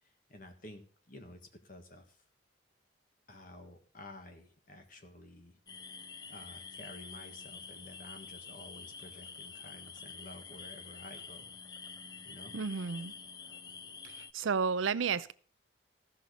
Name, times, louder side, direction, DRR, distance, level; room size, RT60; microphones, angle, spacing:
voice 1, 0.3-2.2 3.3-5.6 6.3-11.5 12.2-12.5, left 1 dB, 45° left, 5 dB, 1.6 m, -51 dB
sound 1, 5.7-14.3, left 5 dB, 20° left, 0.4 m, -48 dB
voice 2, 12.5-13.1 14.0-15.3, right 5 dB, 85° right, 16 dB, 0.5 m, -32 dB
15.0 x 6.4 x 5.2 m, 0.43 s
head